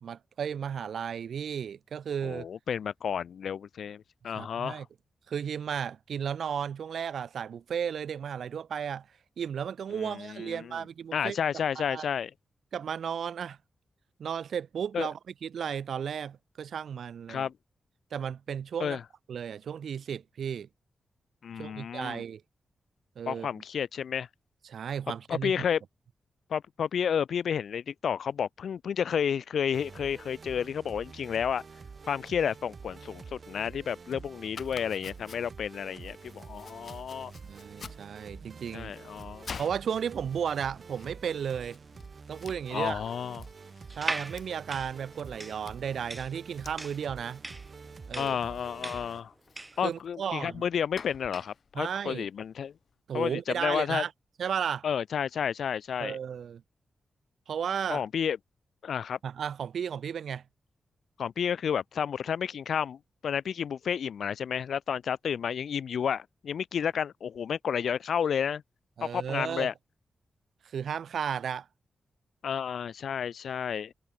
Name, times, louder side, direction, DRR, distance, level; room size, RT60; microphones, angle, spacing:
voice 1, 0.0-2.5 4.4-4.9 5.3-9.1 9.4-11.4 11.8-12.0 12.7-13.6 14.2-17.5 18.1-19.0 19.3-20.7 21.6-22.4 23.2-23.5 24.6-25.5 37.4-38.9 39.6-41.8 42.3-43.0 44.0-47.4 48.1-48.4 49.8-50.6 51.7-52.3 53.1-54.1 54.4-54.9 56.0-56.6 57.5-58.0 59.2-60.4 69.0-69.7 70.6-71.7, right 8 dB, 80° right, 2.1 m, -34 dB
voice 2, 2.2-4.8 9.9-10.8 11.1-12.3 14.9-15.1 17.3-17.5 18.8-19.0 21.4-22.2 23.3-24.3 25.3-25.8 26.5-31.6 32.1-37.3 38.7-39.5 42.7-43.5 48.2-49.3 49.8-52.7 53.1-54.0 54.8-56.2 57.9-58.4 58.8-59.2 61.2-68.6 69.0-69.7 72.4-73.9, left 7 dB, 80° left, 0.9 m, -31 dB
sound 1, 29.7-49.2, right 5 dB, 50° right, 4.8 m, -47 dB
Domestic sounds home sounds, 34.5-52.9, left 6 dB, 60° left, 4.6 m, -51 dB
sound 2, 43.9-49.9, right 2 dB, 20° right, 2.5 m, -39 dB
wide cardioid pair, 105°, 0 cm